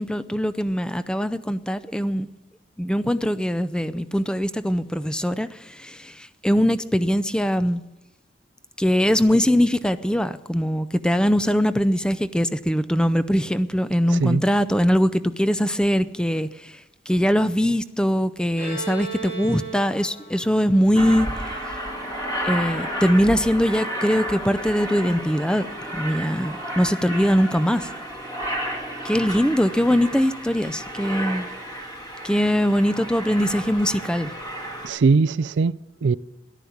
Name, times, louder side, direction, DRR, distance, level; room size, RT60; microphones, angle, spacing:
voice 1, 0.0-2.3 2.8-7.8 8.8-16.5 17.1-21.3 22.4-25.7 25.9-27.9 29.0-31.5 32.2-34.3, equal, 5° left, 0.5 m, -22 dB
voice 2, 14.1-14.4 34.8-36.2, right 4 dB, 80° right, 0.4 m, -21 dB
Bowed string instrument, 18.6-22.1, right 4 dB, 65° left, 7.9 m, -37 dB
Aircraft, 21.0-34.9, equal, 20° left, 2.0 m, -32 dB
14.0 x 11.5 x 7.2 m
head